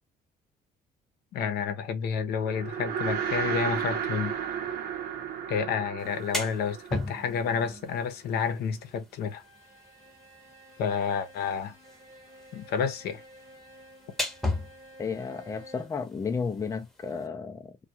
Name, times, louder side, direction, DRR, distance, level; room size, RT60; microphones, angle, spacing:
voice 1, 1.3-4.3 5.5-9.4 10.8-11.7 12.5-13.2, left 6 dB, 70° left, 0.7 m, -30 dB
sound 1, 2.4-7.9, right 8 dB, 65° right, 0.8 m, -33 dB
sound 2, 6.0-17.3, left 2 dB, 5° left, 0.9 m, -39 dB
Bowed string instrument, 9.2-16.1, equal, 50° right, 1.2 m, -52 dB
voice 2, 15.0-17.8, left 5 dB, 20° left, 0.4 m, -33 dB
2.3 x 2.3 x 2.7 m
cardioid pair, 110°, 17 cm